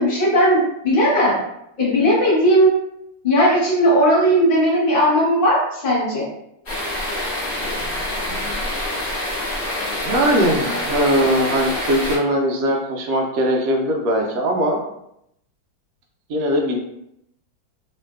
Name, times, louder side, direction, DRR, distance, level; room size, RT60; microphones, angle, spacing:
voice 1, 0.0-1.4 1.8-2.7 3.2-6.2, equal, 45° left, -5 dB, 0.7 m, -17 dB
sound 1, 6.7-12.2, left 1 dB, 25° left, 1.3 m, -26 dB
voice 2, 10.0-14.8 16.3-16.8, equal, 70° right, 1 dB, 0.8 m, -20 dB
3.2 x 2.8 x 2.3 m, 0.79 s
omnidirectional pair, 2.1 m